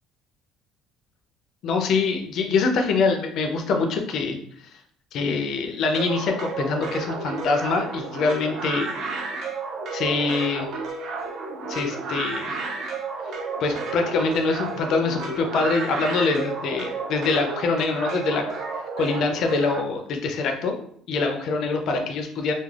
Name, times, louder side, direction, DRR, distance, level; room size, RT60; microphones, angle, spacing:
voice 1, 1.6-4.4 5.1-8.9 9.9-10.7 11.7-12.6 13.6-18.4 19.0-20.7 21.1-22.5, left 4 dB, 45° left, 4 dB, 0.4 m, -24 dB
sound 1, 5.9-19.8, right 4 dB, 50° right, 0.4 m, -32 dB
2.3 x 2.1 x 3.1 m, 0.64 s
cardioid pair, 175°, 0 cm